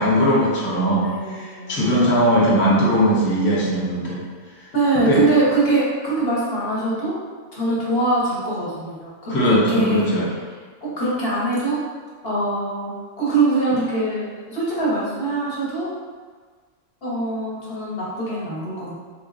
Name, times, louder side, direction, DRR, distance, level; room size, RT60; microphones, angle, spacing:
voice 1, 0.0-4.2 5.0-5.2 9.3-10.3, equal, 20° left, -7 dB, 0.3 m, -19 dB
voice 2, 1.0-2.3 4.7-7.2 7.5-10.1 10.8-11.8 12.2-15.9 17.0-18.9, right 2 dB, 55° left, -7 dB, 1.1 m, -23 dB
3.4 x 2.9 x 2.5 m, 1.5 s
omnidirectional pair, 1.3 m